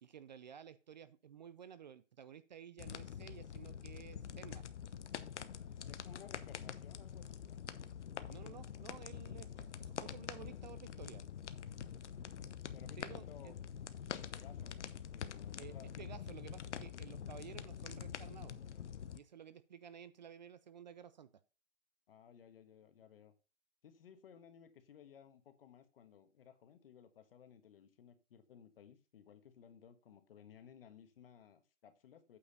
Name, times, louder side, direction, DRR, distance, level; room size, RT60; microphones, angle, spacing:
voice 1, 0.0-4.6 8.3-11.2 13.0-13.5 15.6-18.5 19.1-21.3, right 8 dB, 35° right, 14 dB, 0.5 m, -54 dB
sound 1, 2.8-19.2, left 8 dB, 65° left, 0.9 m, -46 dB
voice 2, 5.8-7.6 12.7-13.5 14.3-16.2 22.1-23.3 23.8-32.4, left 8 dB, 50° left, 9 dB, 1.5 m, -59 dB
8.7 x 4.8 x 5.2 m, 0.33 s
hypercardioid pair, 145°, 37 cm